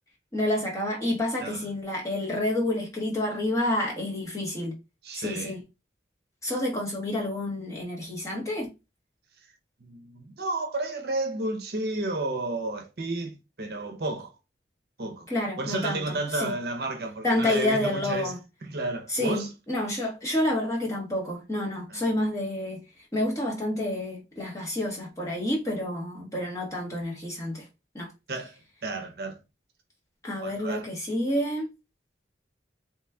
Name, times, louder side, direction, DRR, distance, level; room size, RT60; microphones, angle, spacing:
voice 1, 0.3-4.8 5.1-5.6 6.4-8.7 15.3-16.5 17.2-18.4 19.1-22.8 23.1-27.6 27.9-28.1 30.2-31.7, left 1 dB, 15° left, 1.3 m, -29 dB
voice 2, 5.0-5.6 9.8-14.3 15.0-15.3 15.6-18.3 18.6-19.5 21.9-22.0 28.3-29.4 30.4-30.9, right 2 dB, 60° right, 0.7 m, -32 dB
3.1 x 3.0 x 3.4 m
head